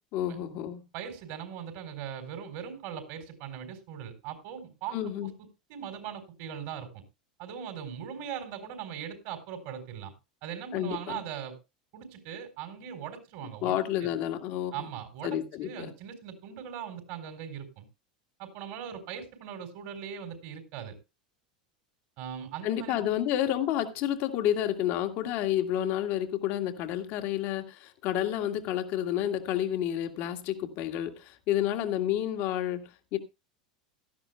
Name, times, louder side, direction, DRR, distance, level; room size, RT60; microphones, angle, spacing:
voice 1, 0.0-0.8 4.9-5.3 10.7-11.2 13.6-14.9 15.2-15.9 22.6-33.2, left 11 dB, 50° left, 1.9 m, -30 dB
voice 2, 0.9-5.3 5.7-7.0 7.4-10.1 10.4-11.6 11.9-14.1 14.7-17.8 18.4-21.0 22.2-23.0, right 8 dB, 55° right, 4.0 m, -40 dB
17.0 x 13.0 x 2.2 m
figure-of-eight pair, 80°, 4 cm